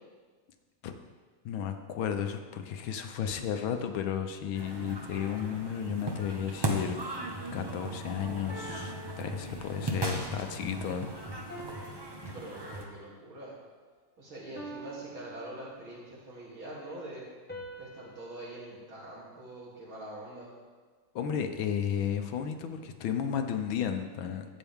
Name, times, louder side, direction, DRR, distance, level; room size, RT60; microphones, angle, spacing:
voice 1, 1.4-7.0 7.5-11.6 21.1-24.4, left 8 dB, 75° left, 7 dB, 1.5 m, -33 dB
sound 1, 4.5-12.9, right 1 dB, 30° right, 0.4 m, -37 dB
sound 2, 8.5-10.1 11.5-13.1 14.6-16.2 17.5-19.9, right 1 dB, 5° left, 0.8 m, -48 dB
voice 2, 12.3-13.5 14.2-17.2 17.8-20.5, right 1 dB, 80° right, -6 dB, 3.6 m, -44 dB
12.5 x 8.5 x 3.6 m, 1.4 s
omnidirectional pair, 2.2 m